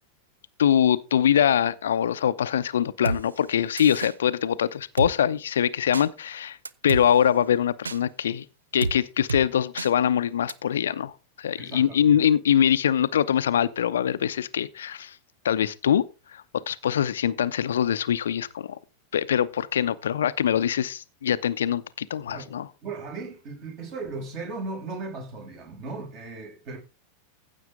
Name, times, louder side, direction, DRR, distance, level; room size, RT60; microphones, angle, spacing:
voice 1, 0.6-6.6 6.8-8.5 8.7-15.2 15.4-16.1 16.3-18.8 19.1-22.7, left 9 dB, 65° left, 0.7 m, -23 dB
Drum kit, 3.1-3.2 3.8-4.1 5.0-5.1 5.9-6.1 6.7-7.0 7.9-8.0 8.8-9.0 9.3-9.4 9.8-9.9 10.5-10.6, right 4 dB, 75° right, 0.6 m, -29 dB
voice 2, 11.6-12.2 22.3-22.5 22.8-26.8, right 3 dB, 40° right, 6.5 m, -37 dB
15.0 x 7.5 x 3.7 m
figure-of-eight pair, 90°, 0 cm